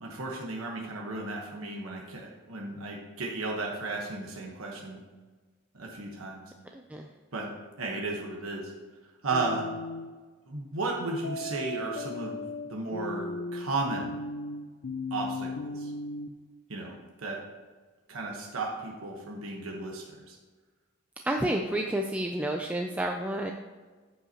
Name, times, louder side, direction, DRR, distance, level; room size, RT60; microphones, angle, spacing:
voice 1, 0.0-5.0 5.7-6.4 7.3-7.5 7.8-8.6 9.2-9.7 10.5-12.4 12.6-14.2 15.1-15.9 16.7-16.9 17.2-17.4 18.1-20.4, right 3 dB, 90° right, -1 dB, 1.2 m, -34 dB
voice 2, 6.7-7.1 21.3-23.5, right 1 dB, 5° right, 2 dB, 0.3 m, -30 dB
sound 1, 9.3-10.1 11.2-16.3, left 2 dB, 90° left, 0.5 m, -36 dB
13.5 x 5.5 x 2.9 m, 1.4 s
head